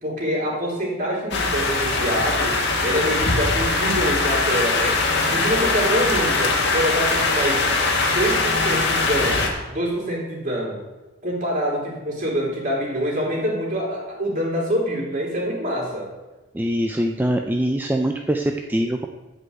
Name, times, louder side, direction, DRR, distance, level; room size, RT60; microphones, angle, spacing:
voice 1, 0.0-5.0 5.3-7.7 8.1-10.8 11.2-16.1, equal, 40° right, -4 dB, 3.6 m, -25 dB
sound 1, 1.3-9.5, left 3 dB, 60° left, 1.7 m, -21 dB
voice 2, 16.5-19.1, right 1 dB, 10° right, 2 dB, 0.5 m, -23 dB
9.7 x 5.4 x 8.0 m, 1.1 s
head